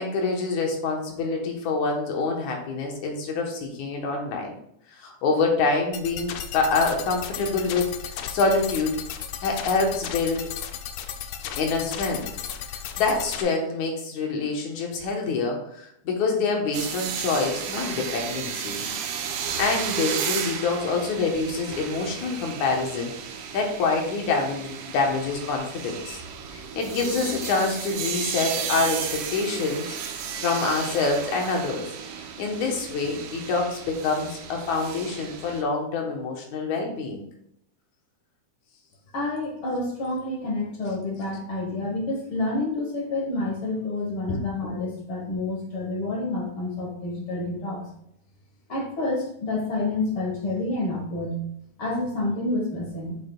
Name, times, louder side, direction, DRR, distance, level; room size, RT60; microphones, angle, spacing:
voice 1, 0.0-4.5 5.0-7.9 8.3-9.0 9.4-10.5 11.6-12.2 12.7-18.8 19.6-23.1 23.5-26.2 26.5-31.9 32.4-37.3 44.3-44.4, left 3 dB, 70° left, 1 dB, 2.4 m, -26 dB
sound 1, 5.9-13.4, left 9 dB, 90° left, 1.4 m, -35 dB
sound 2, 16.7-35.6, right 7 dB, 85° right, 2.4 m, -33 dB
voice 2, 39.1-47.8 48.7-51.4 51.8-53.2, left 2 dB, 50° left, -1 dB, 1.8 m, -28 dB
8.2 x 7.3 x 2.3 m, 0.73 s
omnidirectional pair, 3.7 m